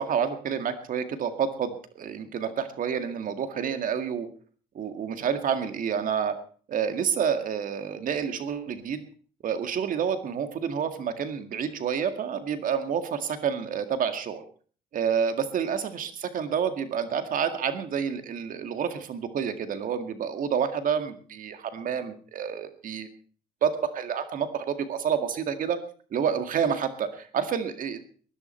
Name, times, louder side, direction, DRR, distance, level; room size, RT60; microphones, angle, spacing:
voice 1, 0.0-4.3 4.8-6.3 6.7-9.0 9.4-14.4 14.9-23.1 23.6-25.8 26.1-28.0, right 7 dB, 55° right, 9 dB, 2.0 m, -29 dB
20.5 x 11.0 x 4.4 m, 0.43 s
cardioid pair, 110°, 17 cm